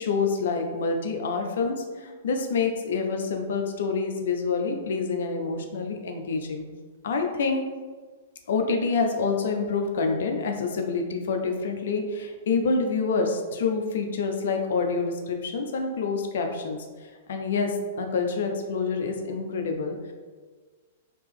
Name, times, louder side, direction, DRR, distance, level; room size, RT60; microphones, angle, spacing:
voice 1, 0.0-6.7 7.0-7.6 8.5-20.1, left 4 dB, 65° left, 4 dB, 0.5 m, -27 dB
2.9 x 2.9 x 3.5 m, 1.4 s
hypercardioid pair, 110°, 0 cm